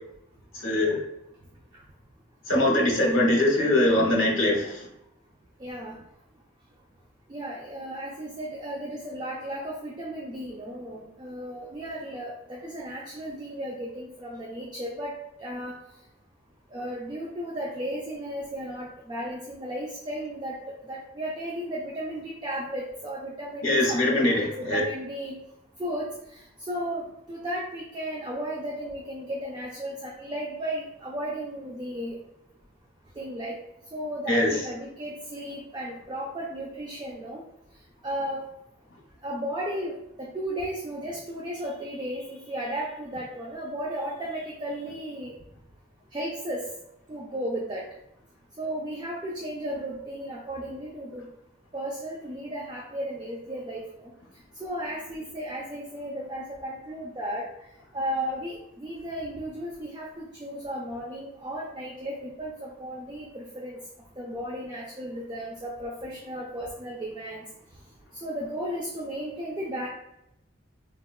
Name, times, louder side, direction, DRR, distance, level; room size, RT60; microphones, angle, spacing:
voice 1, 0.5-1.0 2.5-4.9 23.6-24.8 34.3-34.6, left 1 dB, 70° left, -1 dB, 0.7 m, -22 dB
voice 2, 5.6-5.9 7.3-15.1 15.4-15.8 16.7-20.6 20.9-25.4 25.8-26.4 26.7-32.2 33.2-33.6 33.9-37.4 38.0-38.5 39.2-45.3 46.1-46.7 47.1-47.8 48.6-51.3 51.7-54.1 54.6-57.5 57.9-63.8 64.2-67.4 68.2-69.9, equal, 20° right, -3 dB, 0.3 m, -34 dB
3.8 x 2.2 x 2.2 m, 0.81 s
head